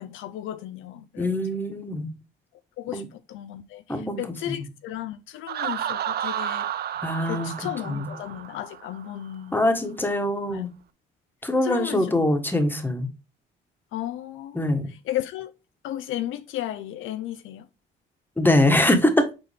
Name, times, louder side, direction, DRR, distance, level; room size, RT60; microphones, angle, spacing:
voice 1, 0.0-1.8 2.8-6.7 7.3-9.6 10.5-10.7 11.6-12.3 13.9-15.5 15.8-17.7, left 12 dB, 85° left, 0.5 m, -34 dB
voice 2, 1.2-2.1 2.9-3.0 3.9-4.6 7.0-7.5 7.8-8.1 9.5-10.7 11.4-13.1 14.5-14.9 18.4-19.3, left 1 dB, 10° left, 1.3 m, -23 dB
Laughter, 5.5-9.2, right 10 dB, 55° right, 0.4 m, -31 dB
6.7 x 4.1 x 3.4 m
cardioid pair, 90°, 20 cm